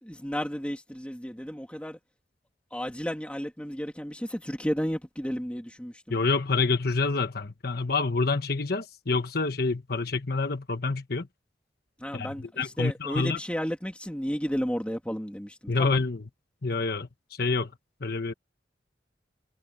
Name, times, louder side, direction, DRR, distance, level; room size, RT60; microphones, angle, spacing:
voice 1, 0.0-2.0 2.7-6.2 12.0-16.0, equal, 5° left, 2.9 m, -33 dB
voice 2, 6.1-11.3 12.1-12.3 12.6-13.4 15.7-16.2 16.6-17.7 18.0-18.3, left 3 dB, 55° left, 1.2 m, -27 dB
head